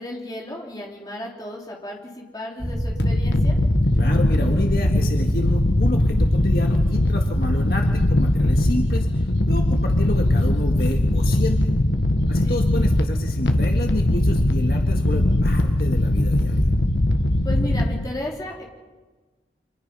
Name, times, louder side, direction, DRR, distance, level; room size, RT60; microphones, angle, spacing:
voice 1, 0.0-3.6 12.4-12.6 17.4-18.6, left 1 dB, 20° left, -2 dB, 3.8 m, -34 dB
sound 1, 2.6-17.0, equal, 10° right, 4.7 m, -31 dB
sound 2, 3.0-18.1, left 1 dB, 80° left, 1.4 m, -20 dB
voice 2, 4.0-11.7 12.3-16.7, left 1 dB, 55° left, 2 dB, 1.8 m, -30 dB
29.5 x 25.5 x 5.6 m, 1.3 s
head